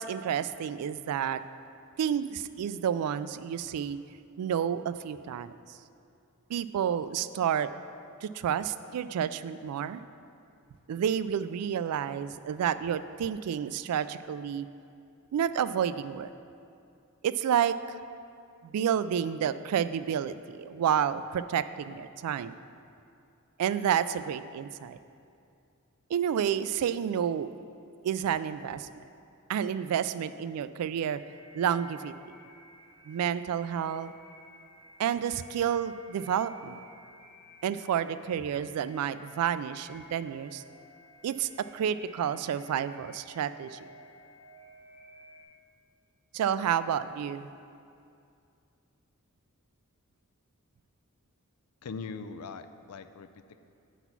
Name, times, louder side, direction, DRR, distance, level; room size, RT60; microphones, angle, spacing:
voice 1, 0.0-1.4 2.0-4.0 4.4-5.5 6.5-7.7 8.2-10.0 10.9-14.7 15.3-16.3 17.2-18.0 18.6-22.5 23.6-25.0 26.1-27.5 28.0-28.9 29.5-31.2 31.5-32.1 33.1-34.1 35.0-36.8 37.6-40.6 41.2-43.8 46.3-47.5, right 8 dB, 85° right, 16 dB, 0.3 m, -30 dB
sound 1, 31.1-45.4, equal, 20° left, 1.4 m, -55 dB
voice 2, 51.8-53.6, left 5 dB, 85° left, 10 dB, 0.4 m, -41 dB
9.1 x 4.0 x 5.8 m, 2.5 s
head